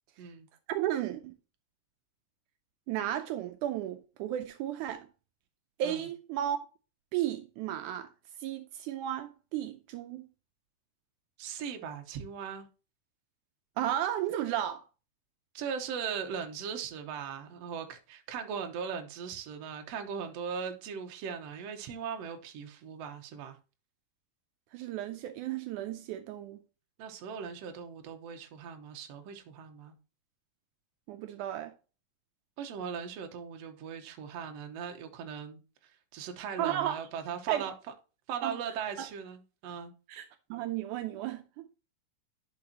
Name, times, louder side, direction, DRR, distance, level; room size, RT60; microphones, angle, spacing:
voice 1, 0.7-1.3 2.9-5.1 5.8-6.6 7.1-8.1 8.4-10.2 13.8-14.8 24.7-26.6 31.1-31.7 36.6-37.0 37.5-37.7 38.4-38.5 39.0-39.1 40.1-40.3 40.5-41.7, right 11 dB, 80° right, 2.0 m, -33 dB
voice 2, 11.4-12.7 15.5-23.6 27.0-30.0 32.6-35.6 36.1-37.7 38.3-39.9, right 7 dB, 65° right, 2.0 m, -39 dB
10.5 x 5.4 x 2.9 m
omnidirectional pair, 3.6 m